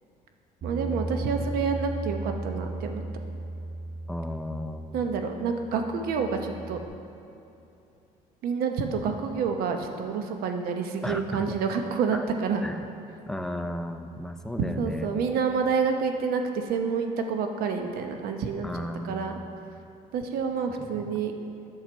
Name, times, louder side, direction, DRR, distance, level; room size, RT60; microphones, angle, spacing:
Bass guitar, 0.6-6.9, right 2 dB, 50° right, 1.6 m, -36 dB
voice 1, 0.6-3.0 4.9-6.8 8.4-12.6 14.8-18.7 19.0-19.4 20.1-21.3, right 5 dB, 75° right, 5 dB, 0.9 m, -28 dB
voice 2, 4.1-5.1 11.0-11.6 12.1-12.2 12.6-12.8 13.3-15.1 18.6-19.4 20.8-21.1, left 1 dB, 5° left, 6 dB, 0.6 m, -34 dB
10.5 x 6.6 x 4.5 m, 2.8 s
cardioid pair, 95°, 15 cm